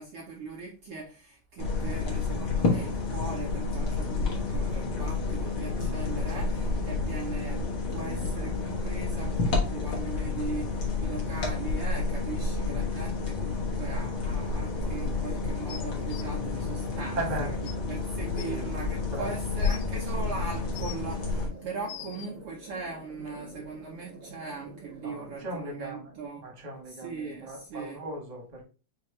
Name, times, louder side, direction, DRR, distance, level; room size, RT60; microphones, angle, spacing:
voice 1, 0.0-7.6 7.9-17.2 17.8-26.4 26.9-28.0, right 3 dB, 80° right, 1.2 m, -40 dB
sound 1, 1.6-21.5, left 4 dB, 50° left, 1.3 m, -30 dB
sound 2, 5.9-25.4, right 2 dB, 40° right, 1.1 m, -49 dB
sound 3, 15.7-16.2 17.3-17.4 17.6-17.7 18.4-18.5 19.2-19.9 20.5-21.1 21.6-22.3 23.3-23.4, left 11 dB, 80° left, 1.8 m, -43 dB
voice 2, 17.1-17.5 18.4-18.7 19.1-19.4 19.7-19.8 25.0-28.6, right 2 dB, 25° right, 0.9 m, -37 dB
6.1 x 2.9 x 3.0 m
omnidirectional pair, 3.6 m